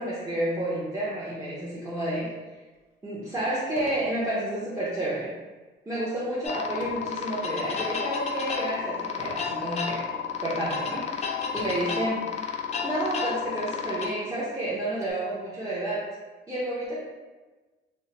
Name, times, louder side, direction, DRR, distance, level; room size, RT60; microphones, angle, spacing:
voice 1, 0.0-2.3 3.0-5.3 5.9-10.0 10.4-12.5 12.8-16.0 16.5-17.0, right 1 dB, 15° right, -8 dB, 0.6 m, -30 dB
sound 1, 2.7-2.8 3.7-4.1 4.6-4.9 6.8-7.2 7.8-8.2 9.2-9.5 10.3-10.4 11.5-12.0 13.0-13.1 13.4-13.5 14.0-15.1, left 2 dB, 85° left, 0.6 m, -44 dB
sound 2, 6.4-14.1, left 6 dB, 35° left, 0.4 m, -31 dB
2.5 x 2.1 x 2.8 m, 1.3 s
cardioid pair, 90°, 20 cm